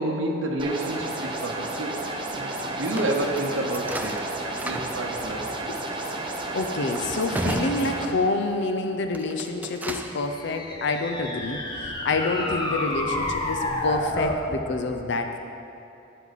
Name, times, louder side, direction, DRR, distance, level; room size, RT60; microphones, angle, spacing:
voice 1, 0.0-2.0 2.3-4.3 4.6-5.6, right 1 dB, 80° right, 0 dB, 0.9 m, -29 dB
sound 1, 0.6-8.1, right 2 dB, 25° right, 0.9 m, -32 dB
sound 2, 2.6-8.6 9.0-10.3, right 1 dB, 10° right, 0.5 m, -35 dB
voice 2, 6.5-15.4, left 3 dB, 65° left, 6 dB, 0.6 m, -27 dB
sound 3, 10.1-14.5, left 1 dB, 25° left, 1.0 m, -30 dB
12.0 x 9.0 x 4.1 m, 2.8 s
head